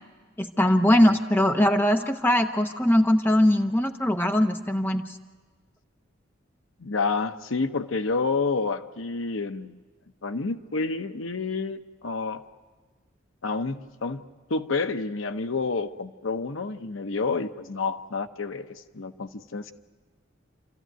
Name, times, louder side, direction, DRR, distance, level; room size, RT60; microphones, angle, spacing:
voice 1, 0.4-5.0, left 1 dB, 10° left, 5 dB, 0.9 m, -21 dB
voice 2, 6.8-9.8 10.2-12.4 13.4-14.2 14.5-19.7, left 4 dB, 80° left, 10 dB, 0.9 m, -29 dB
28.0 x 13.5 x 9.2 m, 1.4 s
head